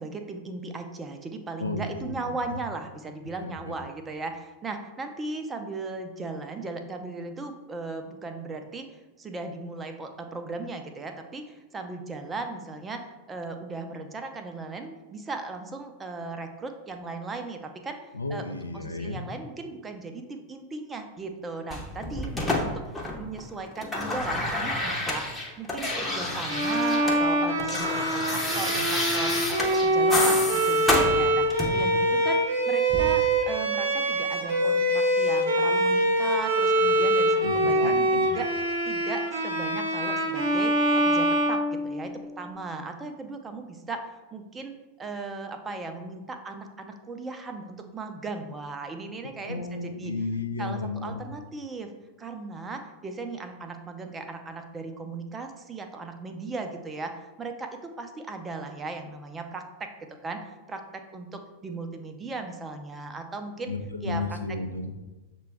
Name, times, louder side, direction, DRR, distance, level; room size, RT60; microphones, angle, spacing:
voice 1, 0.0-8.9 9.2-18.0 18.3-38.5 38.8-44.7 45.0-50.1 50.6-51.9 52.2-63.7 64.0-64.6, right 3 dB, 15° right, 5 dB, 0.5 m, -37 dB
voice 2, 1.6-2.6 3.4-3.7 18.1-19.3 37.4-38.3 49.4-51.2 63.7-65.0, left 3 dB, 80° left, 5 dB, 0.4 m, -33 dB
sound 1, 21.7-23.4 23.7-27.2 27.5-31.9 32.9-33.1, left 2 dB, 10° left, 0.7 m, -29 dB
Bowed string instrument, 26.5-42.3, right 1 dB, 55° right, 0.9 m, -24 dB
6.5 x 2.2 x 3.4 m, 1.1 s
figure-of-eight pair, 90°, 0 cm